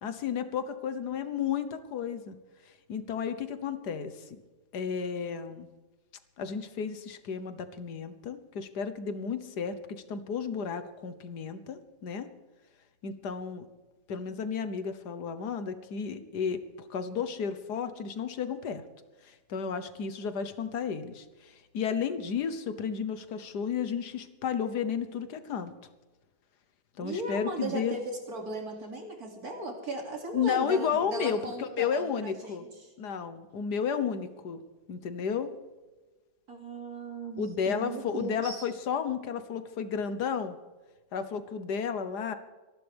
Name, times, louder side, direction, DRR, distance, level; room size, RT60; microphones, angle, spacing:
voice 1, 0.0-2.4 2.9-4.4 4.7-5.7 6.4-12.3 13.0-13.7 14.1-16.6 16.9-18.8 19.2-25.7 27.0-28.0 30.3-32.7 33.0-34.6 34.9-35.5 37.4-40.6 41.1-42.4, left 7 dB, 80° left, 10 dB, 1.7 m, -32 dB
voice 2, 27.0-32.7 36.5-38.6, right 1 dB, 65° right, 2 dB, 3.4 m, -37 dB
25.5 x 11.5 x 3.5 m, 1.2 s
omnidirectional pair, 1.7 m